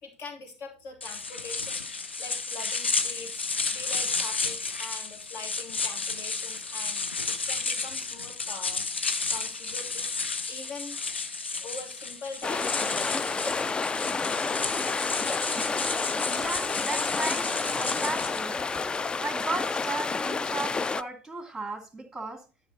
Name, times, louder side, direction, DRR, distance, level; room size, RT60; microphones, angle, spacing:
voice 1, 0.0-3.4 3.7-11.0 11.6-14.6, left 3 dB, 45° left, 3 dB, 2.8 m, -44 dB
sound 1, 1.0-18.4, left 4 dB, 85° left, 0.8 m, -32 dB
sound 2, 12.4-21.0, left 4 dB, 15° left, 0.3 m, -30 dB
voice 2, 16.3-18.6 19.2-22.4, right 2 dB, 5° right, 5 dB, 2.3 m, -35 dB
11.0 x 5.5 x 4.1 m, 0.33 s
figure-of-eight pair, 75°, 6 cm